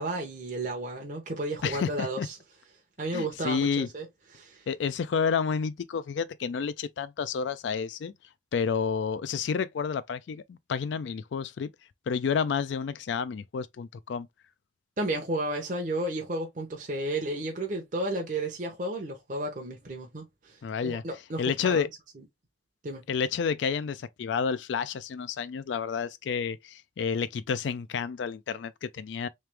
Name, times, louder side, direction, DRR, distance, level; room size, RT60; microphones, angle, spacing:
voice 1, 0.0-2.4 3.0-4.1 4.3-4.7 15.0-21.9 22.2-22.3 22.8-23.0, right 1 dB, 45° right, 0.7 m, -33 dB
voice 2, 1.6-2.3 3.1-3.9 4.7-8.1 8.5-11.7 12.1-14.3 20.6-21.0 21.4-21.9 23.1-29.3, left 6 dB, 80° left, 0.4 m, -30 dB
3.2 x 2.9 x 3.3 m
head